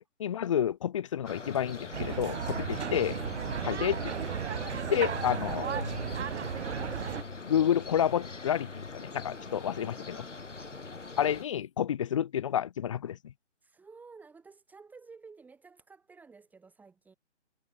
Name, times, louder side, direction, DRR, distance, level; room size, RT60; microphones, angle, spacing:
voice 1, 0.0-3.2 3.6-4.1 4.9-5.9 7.4-10.2 11.2-13.2, left 9 dB, 25° left, 1.0 m, -30 dB
sound 1, 1.2-11.4, left 3 dB, 75° left, 5.7 m, -42 dB
sound 2, 1.9-7.2, right 7 dB, 65° right, 0.7 m, -34 dB
voice 2, 9.5-10.1 10.6-10.8 13.6-17.1, right 4 dB, 5° right, 4.6 m, -54 dB
figure-of-eight pair, 150°, 37 cm